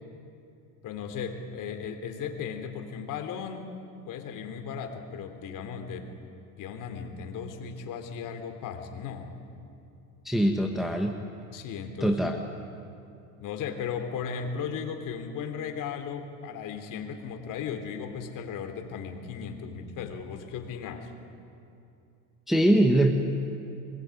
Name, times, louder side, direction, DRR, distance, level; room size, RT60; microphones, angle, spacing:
voice 1, 0.8-3.8 4.0-6.1 6.6-9.3 11.5-12.2 13.4-21.1, left 6 dB, 50° left, 6 dB, 3.3 m, -36 dB
voice 2, 10.2-11.1 12.0-12.4 22.5-23.1, right 1 dB, ahead, 2 dB, 1.5 m, -22 dB
24.0 x 21.0 x 9.7 m, 2.6 s
supercardioid pair, 120°, 39 cm